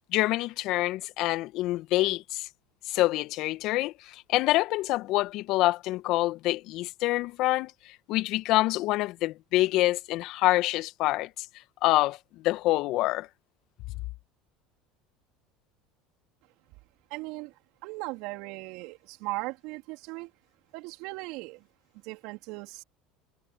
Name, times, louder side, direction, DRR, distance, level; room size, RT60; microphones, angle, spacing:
voice 1, 0.1-2.5 2.8-11.5 11.8-13.3, left 17 dB, 60° left, 1.6 m, -26 dB
voice 2, 17.1-17.5 17.8-20.3 20.7-21.6 22.0-22.8, right 24 dB, 65° right, 3.5 m, -38 dB
hypercardioid pair, 75°, 0 cm